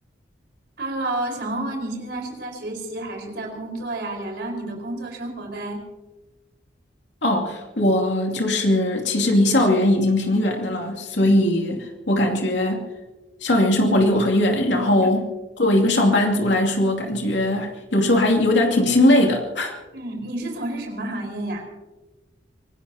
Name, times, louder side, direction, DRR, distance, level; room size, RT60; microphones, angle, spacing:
voice 1, 0.8-5.8 15.0-15.1 19.9-21.7, right 2 dB, 60° right, 2 dB, 4.7 m, -30 dB
voice 2, 7.2-12.8 13.4-15.3 15.6-19.8, left 1 dB, 70° left, 1 dB, 2.6 m, -20 dB
25.5 x 19.5 x 2.9 m, 1.2 s
head